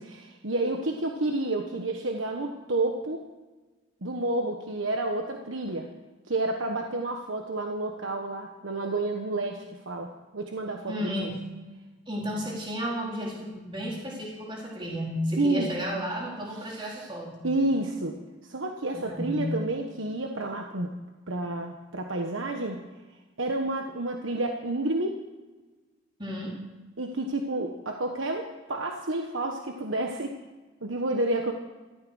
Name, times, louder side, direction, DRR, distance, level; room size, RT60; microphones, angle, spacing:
voice 1, 0.0-3.2 4.0-5.9 6.3-11.3 15.4-15.7 16.7-17.0 17.4-18.2 18.4-20.9 21.3-22.8 23.4-25.2 27.0-30.4 30.8-31.5, right 2 dB, 85° right, 3 dB, 1.3 m, -30 dB
voice 2, 10.9-11.4 12.1-17.5 18.9-19.6 26.2-26.6, equal, 25° right, -3 dB, 4.0 m, -33 dB
15.0 x 13.5 x 6.3 m, 1.2 s
head